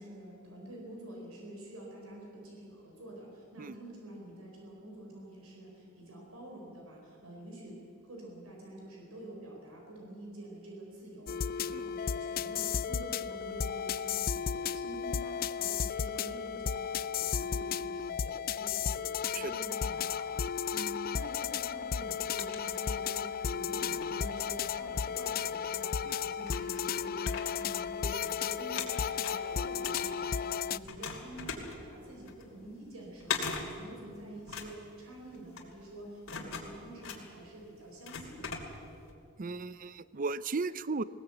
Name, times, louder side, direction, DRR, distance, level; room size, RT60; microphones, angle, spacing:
voice 1, 0.0-20.4 20.7-38.6, right 1 dB, 80° right, -1 dB, 4.7 m, -48 dB
sound 1, 11.3-30.8, left 7 dB, 45° left, 0.4 m, -34 dB
Putting & pulling cartridges from Famicom, 22.0-23.3 23.8-25.4 26.0-26.1 26.4-28.3 28.6-30.5 30.8-39.1, left 5 dB, 70° left, 2.7 m, -41 dB
voice 2, 39.4-41.0, right 4 dB, 40° right, 17 dB, 0.5 m, -36 dB
20.0 x 18.5 x 8.1 m, 2.6 s
head